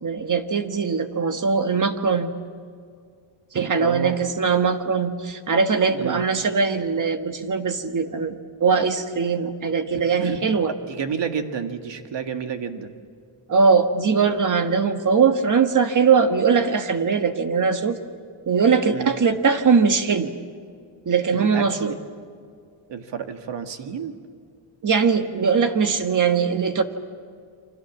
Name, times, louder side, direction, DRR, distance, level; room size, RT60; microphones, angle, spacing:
voice 1, 0.0-2.3 3.5-10.7 13.5-18.0 18.5-20.3 21.0-21.9 24.8-26.8, right 5 dB, 40° right, 7 dB, 1.6 m, -21 dB
voice 2, 3.8-4.2 5.9-6.2 10.2-12.9 18.9-19.1 21.3-22.0 22.9-24.2, right 7 dB, 60° right, 6 dB, 1.9 m, -30 dB
29.0 x 25.0 x 7.4 m, 2.1 s
wide cardioid pair, 150°, 49 cm